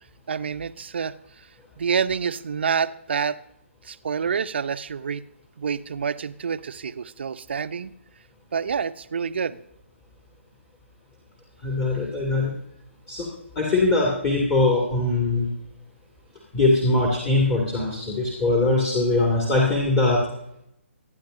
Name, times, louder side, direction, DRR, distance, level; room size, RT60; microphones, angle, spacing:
voice 1, 0.3-1.1 1.8-3.4 3.8-5.3 5.6-7.9 8.5-9.6, right 6 dB, 55° right, 14 dB, 0.6 m, -27 dB
voice 2, 11.6-12.5 13.1-13.3 13.6-15.5 16.5-20.2, left 2 dB, 20° left, -2 dB, 2.3 m, -21 dB
25.0 x 9.7 x 2.6 m, 0.79 s
figure-of-eight pair, 135°, 7 cm